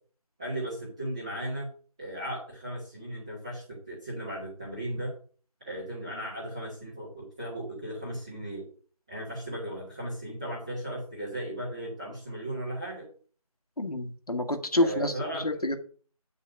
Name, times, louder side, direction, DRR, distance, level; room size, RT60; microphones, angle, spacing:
voice 1, 0.4-1.7 2.0-5.1 5.7-8.7 9.1-13.0 14.7-15.6, right 1 dB, 10° right, -9 dB, 1.1 m, -36 dB
voice 2, 13.8-15.1 15.4-15.8, left 1 dB, 75° left, 5 dB, 1.5 m, -27 dB
8.5 x 4.0 x 5.9 m, 0.42 s
figure-of-eight pair, 170°, 19 cm